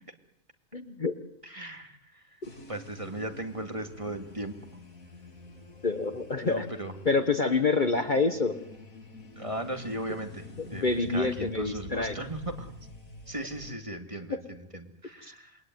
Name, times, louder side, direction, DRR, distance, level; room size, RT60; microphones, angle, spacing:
voice 1, 0.7-1.2 5.8-6.7 7.1-8.6 10.7-12.1 14.3-14.4 15.2-15.3, left 3 dB, 35° left, 9 dB, 1.3 m, -27 dB
voice 2, 1.4-2.4 2.7-4.6 6.4-6.9 9.4-12.7 13.3-15.7, right 1 dB, 25° right, 5 dB, 2.4 m, -37 dB
sound 1, 2.4-13.7, left 2 dB, 80° left, 3.8 m, -48 dB
28.0 x 21.5 x 9.4 m, 0.79 s
omnidirectional pair, 1.4 m